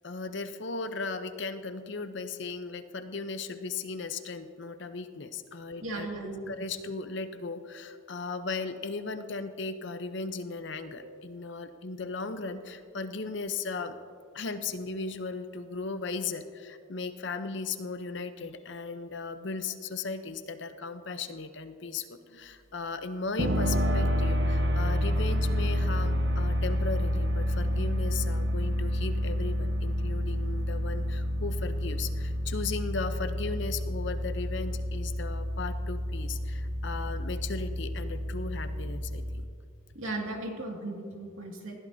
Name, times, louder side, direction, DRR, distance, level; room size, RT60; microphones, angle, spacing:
voice 1, 0.0-6.1 6.5-13.9 14.3-22.1 22.3-39.5, left 4 dB, 60° left, 9 dB, 0.7 m, -36 dB
voice 2, 5.8-6.6 11.0-11.2 39.9-41.8, right 2 dB, 80° right, 1 dB, 2.2 m, -37 dB
sound 1, 23.4-39.4, equal, 55° right, 1.1 m, -29 dB
20.0 x 14.0 x 2.7 m, 2.2 s
head